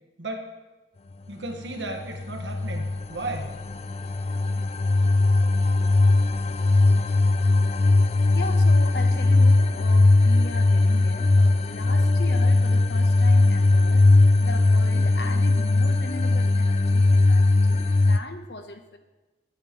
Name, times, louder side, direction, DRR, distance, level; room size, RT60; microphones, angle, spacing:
voice 1, 0.2-0.5 1.3-3.5, right 2 dB, 80° right, 3 dB, 1.5 m, -34 dB
sound 1, 1.9-18.2, left 2 dB, 35° left, 0.4 m, -19 dB
voice 2, 8.3-14.1 14.4-19.0, left 2 dB, 65° left, 7 dB, 1.0 m, -38 dB
19.5 x 8.8 x 3.1 m, 1.1 s
head